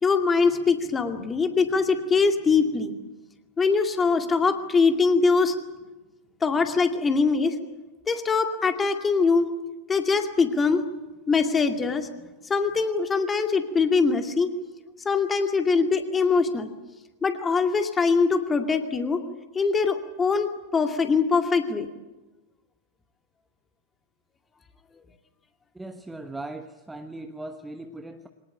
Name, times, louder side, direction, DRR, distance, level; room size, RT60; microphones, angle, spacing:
voice 1, 0.0-2.9 3.6-5.5 6.4-7.5 8.1-9.5 9.9-10.8 11.3-12.1 12.5-14.5 15.0-16.7 17.2-19.2 19.5-21.9, left 4 dB, 15° left, 5 dB, 2.3 m, -22 dB
voice 2, 25.7-28.3, right 2 dB, 5° right, 6 dB, 1.2 m, -38 dB
23.5 x 19.0 x 9.1 m, 1.1 s
figure-of-eight pair, 90°, 0 cm